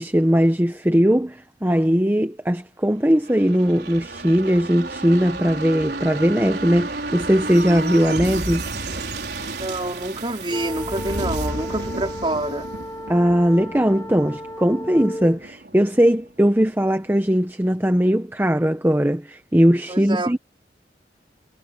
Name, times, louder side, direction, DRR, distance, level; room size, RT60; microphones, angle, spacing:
voice 1, 0.0-8.6 8.9-9.1 13.1-20.4, equal, 10° right, 1.0 m, -19 dB
sound 1, 3.2-16.6 17.0-17.1, right 2 dB, 65° right, 5.0 m, -32 dB
voice 2, 9.6-12.7 19.9-20.4, right 1 dB, 30° right, 3.9 m, -27 dB
sound 2, 10.5-15.4, equal, 15° left, 2.3 m, -34 dB
head